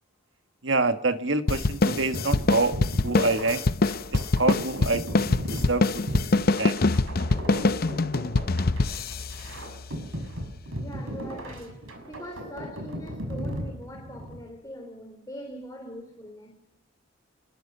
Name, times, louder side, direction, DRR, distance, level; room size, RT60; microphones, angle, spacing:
voice 1, 0.6-2.8 3.0-3.6 4.1-5.1 5.5-6.0 6.6-6.8, right 3 dB, 65° right, 1.7 m, -26 dB
sound 1, 1.5-10.3, left 3 dB, 50° left, 0.7 m, -25 dB
sound 2, 1.9-14.4, equal, 85° right, 6.3 m, -37 dB
voice 2, 10.8-16.6, equal, 20° left, 3.7 m, -42 dB
27.0 x 22.5 x 5.5 m
head